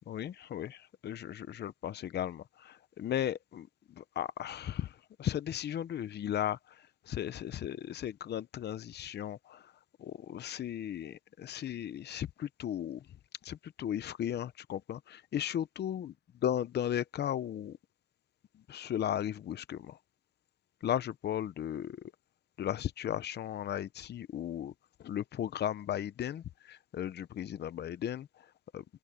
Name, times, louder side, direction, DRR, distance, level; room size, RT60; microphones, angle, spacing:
voice 1, 0.1-9.7 10.0-13.1 13.4-16.1 16.4-17.8 18.5-20.0 20.8-22.1 22.6-24.7 25.0-28.8, left 10 dB, 55° left, 0.8 m, -36 dB
open air
cardioid pair, 90°, 20 cm